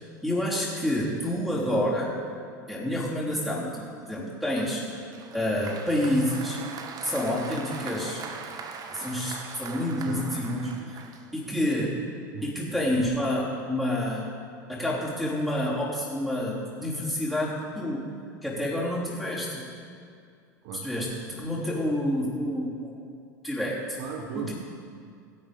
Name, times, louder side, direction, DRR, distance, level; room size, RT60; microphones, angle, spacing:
voice 1, 0.2-2.1 2.7-5.0 5.3-6.6 7.0-8.2 8.9-11.0 11.3-12.0 12.4-14.3 14.7-18.0 18.4-19.6 20.8-23.0 23.4-24.0 24.4-24.5, left 1 dB, ahead, -7 dB, 3.6 m, -28 dB
Applause, 4.6-11.7, right 5 dB, 40° right, 1.1 m, -41 dB
voice 2, 10.1-10.9 12.3-12.7 20.6-20.9 24.0-24.5, right 6 dB, 65° right, 3 dB, 1.2 m, -37 dB
15.5 x 8.1 x 5.2 m, 2.3 s
hypercardioid pair, 90°, 10 cm